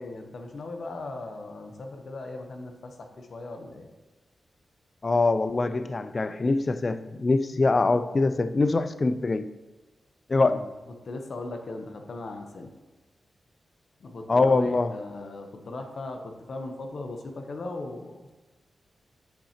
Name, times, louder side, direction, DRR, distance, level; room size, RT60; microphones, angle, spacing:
voice 1, 0.0-3.9 10.5-10.6 11.0-12.7 14.0-18.3, left 2 dB, 65° left, 0.8 m, -38 dB
voice 2, 5.0-9.5 10.3-10.6 14.3-15.0, left 3 dB, 40° left, 0.4 m, -23 dB
10.0 x 5.6 x 2.9 m
cardioid pair, 60°, 0 cm